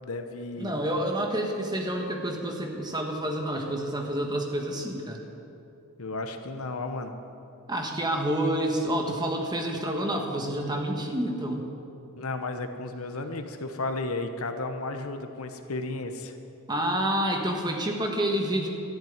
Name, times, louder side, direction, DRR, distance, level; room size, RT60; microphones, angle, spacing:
voice 1, 0.0-0.7 6.0-7.1 12.2-16.4, left 2 dB, 75° left, 7 dB, 1.0 m, -33 dB
voice 2, 0.6-5.2 7.7-11.7 16.7-18.7, right 1 dB, 20° right, 2 dB, 1.4 m, -28 dB
13.0 x 7.5 x 9.4 m, 2.8 s
head